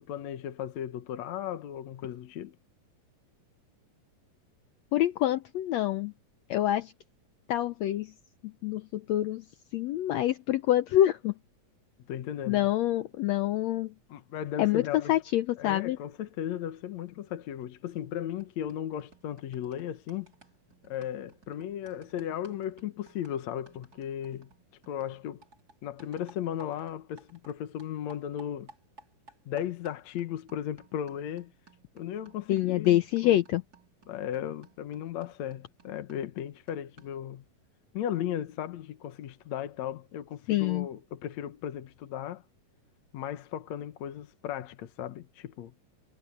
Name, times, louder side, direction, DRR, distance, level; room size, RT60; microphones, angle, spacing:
voice 1, 0.0-2.6 12.1-12.7 14.1-15.2 15.6-20.3 20.8-24.5 24.9-25.4 25.8-28.7 29.5-31.5 32.0-33.4 34.1-37.4 37.9-42.4 43.1-45.7, left 10 dB, 65° left, 2.2 m, -36 dB
voice 2, 4.9-6.1 6.5-6.9 7.5-8.1 8.4-9.4 9.7-11.4 12.5-13.9 14.6-16.0 32.5-33.6 40.5-40.9, left 13 dB, 80° left, 1.5 m, -26 dB
sound 1, 17.9-18.1 18.4-27.5 27.8-37.3, right 4 dB, 25° right, 4.4 m, -59 dB
omnidirectional pair, 3.8 m